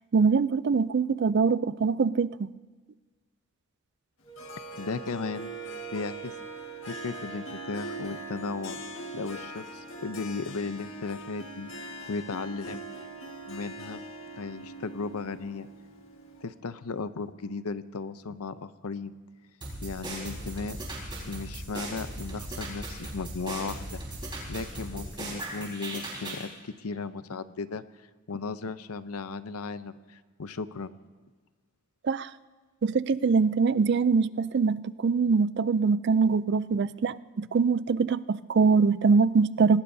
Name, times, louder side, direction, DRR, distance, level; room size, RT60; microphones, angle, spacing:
voice 1, 0.1-2.5 32.0-32.3 32.8-39.8, right 5 dB, 50° right, 17 dB, 0.4 m, -23 dB
Wind instrument woodwind instrument, 4.2-8.1, right 8 dB, 20° left, 2.8 m, -44 dB
Harp, 4.4-16.6, right 1 dB, 60° left, 1.7 m, -42 dB
voice 2, 4.8-5.5 5.9-6.3 6.9-8.8 9.1-12.8 13.5-14.0 14.4-15.7 16.4-19.1 19.8-20.8 21.3-24.0 24.5-27.8 28.3-30.9, left 4 dB, 85° left, 13 dB, 0.7 m, -36 dB
sound 1, 19.6-26.5, right 1 dB, 20° right, 4.4 m, -38 dB
25.5 x 18.5 x 2.7 m, 1.4 s
head